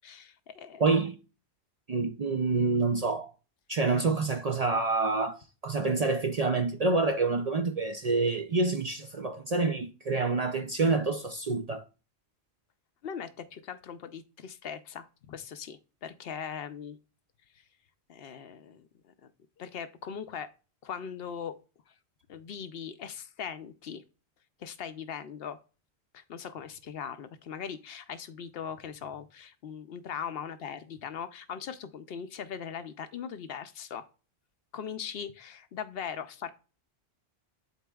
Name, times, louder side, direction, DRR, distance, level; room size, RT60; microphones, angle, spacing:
voice 1, 0.0-0.8 13.0-17.0 18.1-18.9 19.6-20.5 20.8-21.6 22.3-24.0 24.6-25.6 26.1-34.1 34.7-36.5, left 7 dB, 65° left, 0.8 m, -40 dB
voice 2, 0.8-1.2 1.9-3.3 3.7-11.8, right 3 dB, 50° right, 0.5 m, -27 dB
11.0 x 4.1 x 2.3 m
omnidirectional pair, 1.1 m